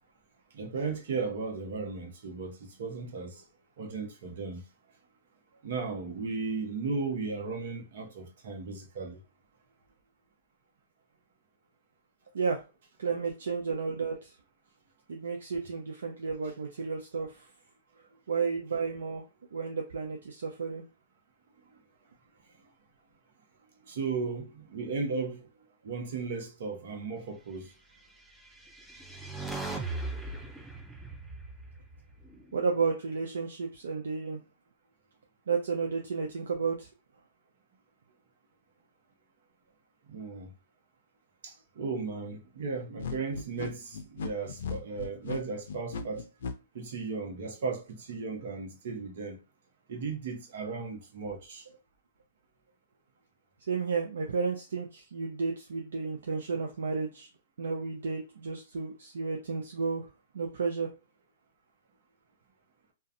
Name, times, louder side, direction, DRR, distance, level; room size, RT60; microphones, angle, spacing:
voice 1, 0.5-3.5 3.8-4.6 5.6-9.2 21.6-21.8 23.8-25.5 25.8-27.7 40.1-40.5 41.4-46.2 46.7-49.4 49.9-51.7, right 4 dB, 65° right, 0.8 m, -36 dB
voice 2, 13.0-14.3 15.1-17.5 18.3-19.2 19.5-20.8 32.5-34.4 35.5-36.9 53.7-57.3 57.6-60.1 60.3-60.9, right 5 dB, 80° right, 0.4 m, -32 dB
sound 1, 28.4-32.7, right 2 dB, 5° right, 0.4 m, -39 dB
sound 2, 43.0-46.5, left 5 dB, 70° left, 0.4 m, -37 dB
2.3 x 2.2 x 2.6 m
hypercardioid pair, 125°, 0 cm